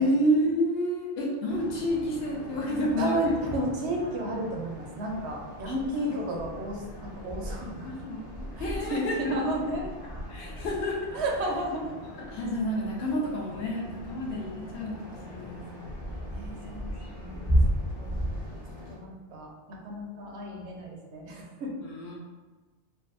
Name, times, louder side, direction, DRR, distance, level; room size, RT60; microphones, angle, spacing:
voice 1, 0.0-3.2 5.7-5.8 6.0-6.1 7.8-9.3 10.3-11.1 12.0-16.2 17.3-17.7 21.8-22.2, equal, 70° left, -2 dB, 0.8 m, -30 dB
sound 1, 1.5-19.0, equal, 35° left, 0.4 m, -35 dB
voice 2, 3.0-7.9 8.6-9.9 11.1-11.9 16.3-16.9 17.2-17.5 18.0-18.3 18.9-21.7, right 1 dB, 85° right, 0 dB, 0.9 m, -32 dB
2.6 x 2.2 x 2.5 m, 1.3 s
omnidirectional pair, 1.1 m